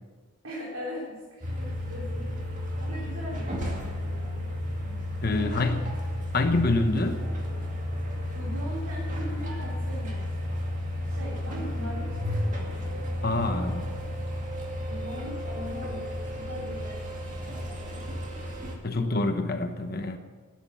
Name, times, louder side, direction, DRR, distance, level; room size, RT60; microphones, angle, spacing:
voice 1, 0.4-2.5 2.8-4.5 5.3-5.7 8.3-10.6 11.1-13.7 14.1-14.3 14.9-18.1 18.9-19.4, equal, 80° right, -6 dB, 4.1 m, -41 dB
sound 1, 1.4-18.8, left 1 dB, 35° right, 2.2 m, -32 dB
voice 2, 5.2-5.8 6.3-7.2 13.2-13.9 18.8-20.2, left 2 dB, 45° left, 7 dB, 1.0 m, -26 dB
14.5 x 10.5 x 7.2 m, 1.4 s
head